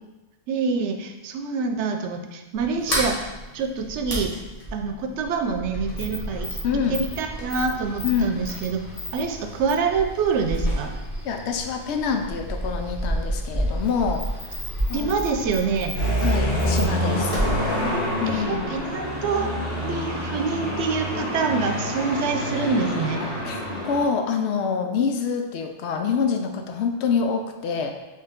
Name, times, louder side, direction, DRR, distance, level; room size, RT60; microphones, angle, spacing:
voice 1, 0.5-4.4 4.7-6.5 6.9-8.8 9.1-11.0 14.9-16.0 18.3-19.5 19.8-23.3, right 5 dB, 85° right, 5 dB, 0.9 m, -26 dB
Sliding door, 2.5-18.9, equal, 35° left, 1.2 m, -31 dB
voice 2, 6.6-7.0 8.0-8.4 11.2-14.6 14.9-15.1 16.2-17.4 18.2-18.7 23.2-28.0, left 6 dB, 75° left, 5 dB, 0.8 m, -26 dB
sound 1, 15.9-24.0, equal, 60° left, 1.3 m, -26 dB
4.6 x 3.2 x 3.6 m, 1.1 s
omnidirectional pair, 1.2 m